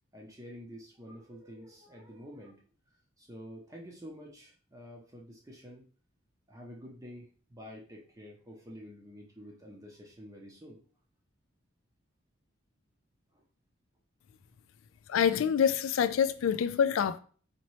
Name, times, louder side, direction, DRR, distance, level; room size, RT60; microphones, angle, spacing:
voice 1, 0.1-2.6 3.2-5.9 6.5-10.8 13.3-13.4, equal, 15° right, 0.6 m, -48 dB
voice 2, 15.1-17.2, left 7 dB, 70° left, 0.3 m, -26 dB
4.2 x 2.8 x 3.0 m
head